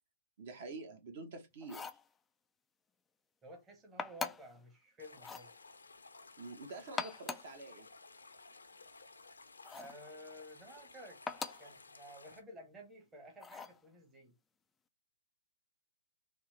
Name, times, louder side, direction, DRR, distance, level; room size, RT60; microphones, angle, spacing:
voice 1, 0.4-1.9 6.4-7.9, right 3 dB, 45° right, 1.0 m, -47 dB
sound 1, 1.6-2.1 4.0-4.6 5.2-5.5 6.8-7.6 9.6-10.0 11.3-11.7 13.4-13.8, left 5 dB, 10° left, 0.3 m, -42 dB
voice 2, 3.4-5.5 9.7-11.2 11.6-14.3, equal, 15° right, 1.0 m, -53 dB
sound 2, 5.0-12.4, left 3 dB, 75° left, 0.7 m, -56 dB
3.5 x 2.7 x 3.1 m
figure-of-eight pair, 125°, 0 cm